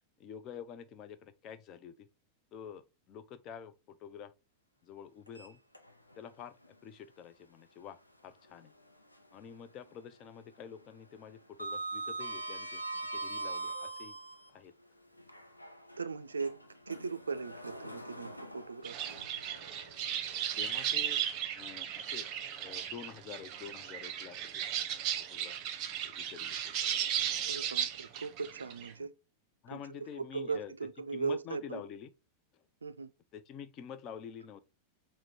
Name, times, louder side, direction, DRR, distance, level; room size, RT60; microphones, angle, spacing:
voice 1, 0.2-2.1 2.5-4.3 4.8-5.6 6.2-6.6 6.8-8.0 8.2-8.7 9.3-12.8 13.1-14.2 14.5-14.7 20.6-21.2 21.5-22.2 22.6-24.6 24.9-25.5 26.0-27.5 29.0-29.1 29.6-30.7 31.1-32.1 32.5-32.6 33.3-34.6, left 8 dB, 35° left, 0.5 m, -48 dB
Sliding door, 5.3-6.2 6.6-6.7 8.4-9.5 9.8-10.1 10.4-14.5 15.2-20.4, right 2 dB, 85° left, 0.5 m, -43 dB
voice 2, 16.0-16.5 16.9-19.2 27.5-29.1 29.7-31.8 32.8-33.1, right 5 dB, 75° right, 0.4 m, -38 dB
sound 1, 18.8-28.9, right 10 dB, 40° right, 0.7 m, -36 dB
5.0 x 2.1 x 4.4 m
figure-of-eight pair, 90°, 0 cm